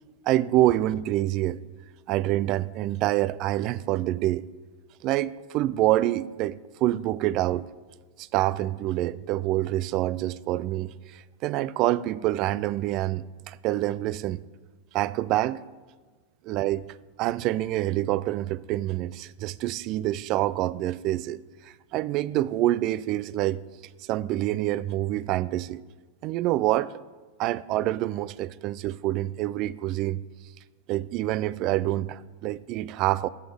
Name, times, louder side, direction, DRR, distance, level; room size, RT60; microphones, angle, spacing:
voice 1, 0.3-1.6 2.1-4.5 5.0-7.7 8.2-14.4 14.9-15.6 16.5-16.8 17.2-21.4 21.9-23.6 24.1-25.8 26.2-26.9 27.4-30.2 30.9-33.3, right 15 dB, 45° right, 0.3 m, -26 dB
14.0 x 8.0 x 3.5 m
hypercardioid pair, 95°, 0 cm